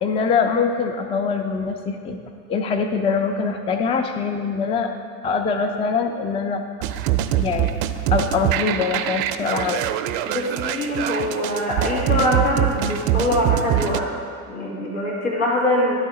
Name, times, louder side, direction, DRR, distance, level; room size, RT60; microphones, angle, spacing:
voice 1, 0.0-2.2 2.5-4.9 5.2-6.6 7.3-7.7 8.1-9.8, left 5 dB, 15° left, 6 dB, 0.4 m, -23 dB
sound 1, 6.8-14.0, right 12 dB, 55° right, 0.5 m, -24 dB
voice 2, 10.3-14.1 14.5-16.0, left 1 dB, 80° left, -4 dB, 2.1 m, -23 dB
11.0 x 4.0 x 4.8 m, 2.2 s
hypercardioid pair, 75°, 44 cm